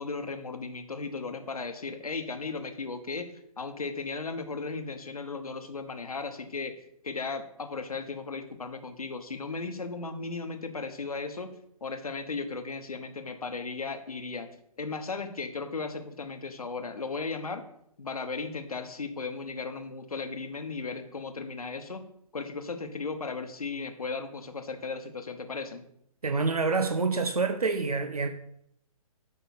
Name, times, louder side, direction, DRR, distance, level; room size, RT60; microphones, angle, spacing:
voice 1, 0.0-3.3 3.6-6.8 7.0-11.5 11.8-14.5 14.8-17.6 18.0-22.0 22.3-25.9, left 4 dB, 75° left, 1.1 m, -36 dB
voice 2, 26.2-28.3, right 4 dB, 80° right, 0.7 m, -27 dB
8.4 x 5.6 x 4.2 m
figure-of-eight pair, 130°, 19 cm